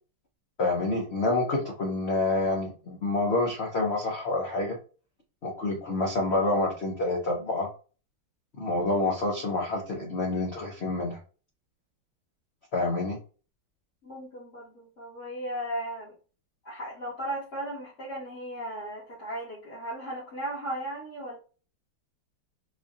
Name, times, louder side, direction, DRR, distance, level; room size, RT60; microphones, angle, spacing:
voice 1, 0.6-4.8 5.4-7.7 8.6-11.2 12.7-13.2, left 2 dB, 80° left, -1 dB, 0.5 m, -27 dB
voice 2, 14.0-16.1 16.6-21.4, right 1 dB, 40° left, -10 dB, 1.7 m, -36 dB
4.3 x 2.7 x 2.4 m, 0.37 s
omnidirectional pair, 2.3 m